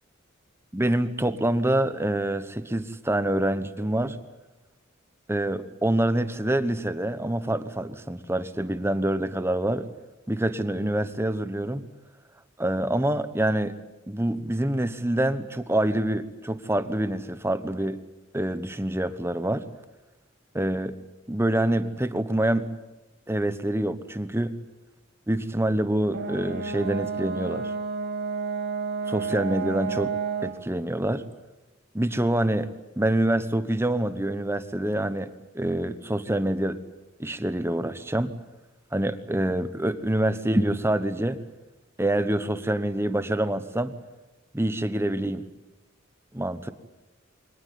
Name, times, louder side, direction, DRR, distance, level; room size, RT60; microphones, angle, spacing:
voice 1, 0.7-4.2 5.3-9.9 10.3-11.9 12.6-13.7 14.1-18.0 18.3-19.7 20.5-21.0 21.3-22.7 23.3-24.6 25.3-27.7 29.1-30.1 30.4-31.2 31.9-32.7 33.0-35.3 35.5-36.8 37.2-38.3 38.9-41.4 42.0-43.9 44.5-45.4 46.3-46.7, right 1 dB, 10° right, 12 dB, 1.1 m, -26 dB
Brass instrument, 26.1-30.6, right 5 dB, 55° right, 2.1 m, -30 dB
23.5 x 19.0 x 9.5 m, 1.1 s
head